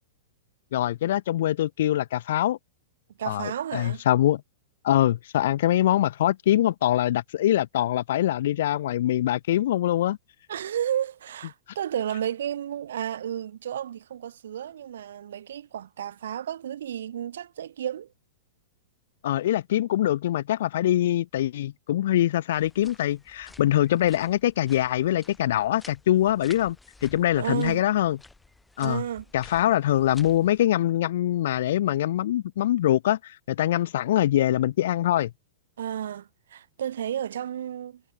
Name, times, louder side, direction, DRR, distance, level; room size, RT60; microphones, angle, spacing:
voice 1, 0.7-2.6 3.3-4.4 4.8-10.2 19.2-26.8 27.0-28.2 28.8-29.0 29.3-35.3, left 13 dB, 50° left, 0.9 m, -23 dB
voice 2, 3.2-4.0 10.5-18.1 27.4-27.8 28.8-29.3 35.8-38.0, right 10 dB, 70° right, 2.0 m, -32 dB
sound 1, 22.5-30.7, left 2 dB, 5° left, 5.0 m, -52 dB
supercardioid pair, 180°, 0 cm